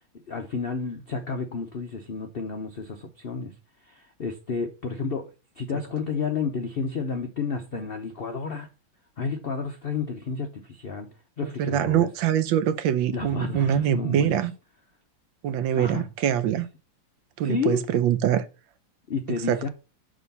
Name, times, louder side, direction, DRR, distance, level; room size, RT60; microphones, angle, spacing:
voice 1, 0.3-3.5 3.9-5.3 5.6-8.7 9.2-11.1 11.4-12.1 13.1-14.4 15.7-16.1 17.4-17.8 19.1-19.7, left 5 dB, 70° left, 0.5 m, -31 dB
voice 2, 11.4-14.5 15.4-16.7 17.4-18.5 19.5-19.7, right 10 dB, 80° right, 1.4 m, -24 dB
6.2 x 3.7 x 5.3 m
omnidirectional pair, 2.0 m